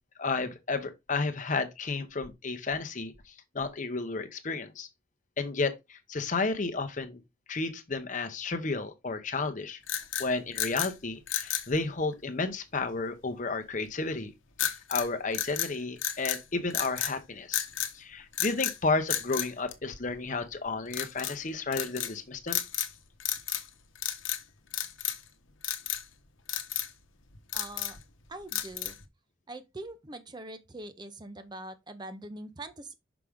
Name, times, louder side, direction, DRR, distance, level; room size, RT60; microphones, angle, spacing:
voice 1, 0.2-3.1 3.5-4.9 5.4-7.2 7.5-9.8 10.2-14.3 14.6-17.7 17.9-22.6, left 3 dB, 40° left, 0.8 m, -32 dB
sound 1, 9.8-10.9 11.3-11.7 14.6-15.1 15.3-16.4 16.7-17.2 17.5-17.9 18.3-18.8 19.1-20.3 20.9-21.4 21.7-22.1 22.5-22.9 23.2-23.7 24.0-24.4 24.7-25.3 25.6-26.0 26.5-26.9 27.3-28.0 28.5-29.1, left 11 dB, 75° left, 0.9 m, -32 dB
voice 2, 27.5-28.0 28.3-29.0 29.5-32.9, right 2 dB, 20° right, 0.6 m, -43 dB
6.0 x 4.9 x 3.5 m
head